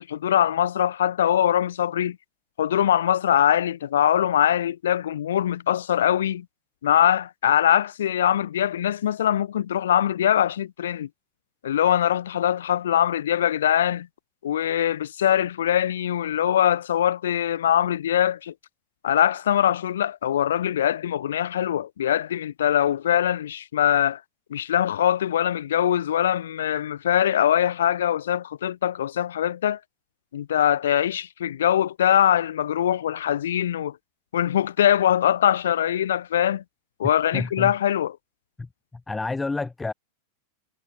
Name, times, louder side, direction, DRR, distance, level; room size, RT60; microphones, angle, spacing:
voice 1, 0.0-2.2 2.6-6.5 6.8-11.1 11.6-14.1 14.4-18.5 19.0-24.2 24.5-29.8 30.3-34.0 34.3-36.6 37.0-38.2, left 10 dB, 60° left, 0.4 m, -22 dB
voice 2, 37.3-37.7 38.6-39.9, left 3 dB, 10° left, 2.4 m, -30 dB
figure-of-eight pair, 90°, 0 cm